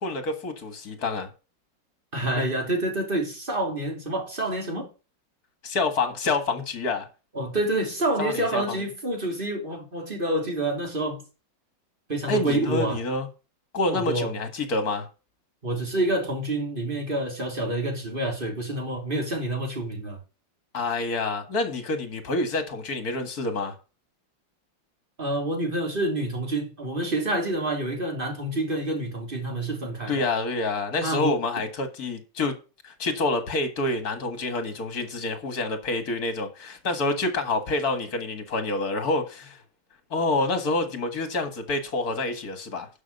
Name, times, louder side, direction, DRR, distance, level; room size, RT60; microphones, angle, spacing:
voice 1, 0.0-1.3 5.6-7.1 8.2-8.8 12.3-13.3 13.7-15.1 20.7-23.8 30.1-32.6 32.8-39.6 40.1-42.9, left 2 dB, 55° left, 2.3 m, -27 dB
voice 2, 2.1-4.9 7.3-11.2 12.1-13.0 13.9-14.3 15.6-20.2 25.2-30.2 31.0-31.4, right 1 dB, 25° right, 3.3 m, -28 dB
11.5 x 6.2 x 5.4 m
omnidirectional pair, 2.0 m